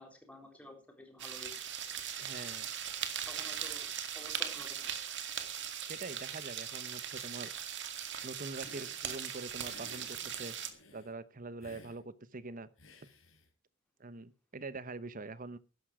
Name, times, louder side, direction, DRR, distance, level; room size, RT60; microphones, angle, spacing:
voice 1, 0.0-1.6 3.2-3.9 4.1-4.9, left 1 dB, 5° left, 2 dB, 4.1 m, -51 dB
sound 1, 1.2-10.7, right 9 dB, 60° right, 2.2 m, -39 dB
voice 2, 2.2-2.7 5.8-7.5 8.2-10.6 10.9-12.7 14.0-15.6, right 3 dB, 40° right, 16 dB, 1.0 m, -44 dB
Hiss, 8.6-9.0 9.6-11.1 11.6-12.0 12.8-13.5, left 1 dB, 75° left, 4.3 m, -56 dB
13.5 x 11.5 x 4.9 m, 0.32 s
head